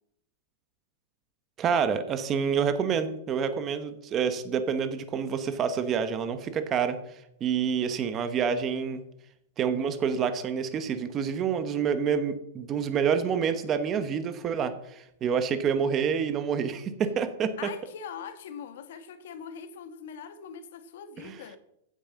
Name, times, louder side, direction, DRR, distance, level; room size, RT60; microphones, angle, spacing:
voice 1, 1.6-9.0 9.6-17.5 21.2-21.4, right 7 dB, 20° right, 0.9 m, -28 dB
voice 2, 17.6-21.6, left 7 dB, 55° left, 1.6 m, -42 dB
15.0 x 8.8 x 7.5 m
supercardioid pair, 180°, 0 cm